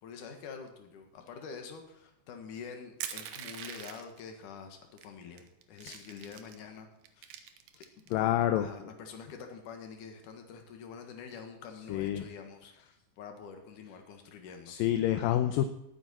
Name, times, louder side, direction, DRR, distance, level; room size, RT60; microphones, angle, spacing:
voice 1, 0.0-6.9 7.2-7.3 8.1-14.7, left 6 dB, 65° left, 5 dB, 2.9 m, -46 dB
Crushing, 3.0-4.2 5.0-5.1 5.4-6.6 7.0-8.1, right 9 dB, 70° right, 2.3 m, -42 dB
voice 2, 8.1-8.7 11.9-12.2 14.7-15.7, left 12 dB, 80° left, 9 dB, 2.3 m, -28 dB
18.0 x 9.0 x 4.3 m, 0.83 s
omnidirectional pair, 4.2 m